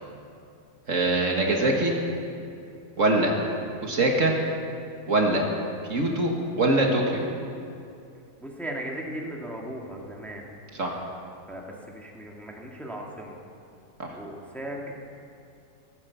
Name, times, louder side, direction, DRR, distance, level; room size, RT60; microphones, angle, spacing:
voice 1, 0.9-1.9 3.0-3.3 3.8-4.3 5.1-5.5 5.9-7.3 10.8-11.0 14.0-14.1, right 2 dB, 55° right, 0 dB, 1.9 m, -23 dB
voice 2, 8.4-10.5 11.5-13.4 14.1-14.9, right 1 dB, ahead, -1 dB, 1.8 m, -37 dB
15.0 x 14.0 x 7.0 m, 2.6 s
omnidirectional pair, 1.7 m